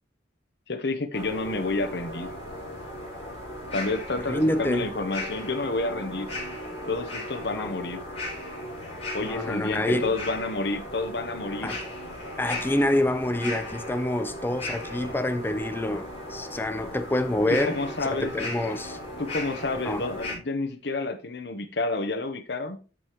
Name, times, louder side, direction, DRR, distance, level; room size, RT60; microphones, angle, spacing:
voice 1, 0.7-2.3 3.7-6.3 6.9-8.0 9.1-11.7 17.5-18.5 19.2-22.8, left 3 dB, 60° left, 0.9 m, -30 dB
sound 1, 1.1-20.4, left 1 dB, 35° left, 4.3 m, -37 dB
voice 2, 4.2-4.9 7.6-7.7 9.2-10.2 11.6-11.8 12.4-17.8 18.1-19.0 19.9-20.0, left 1 dB, 10° left, 0.4 m, -27 dB
13.5 x 5.0 x 3.0 m
head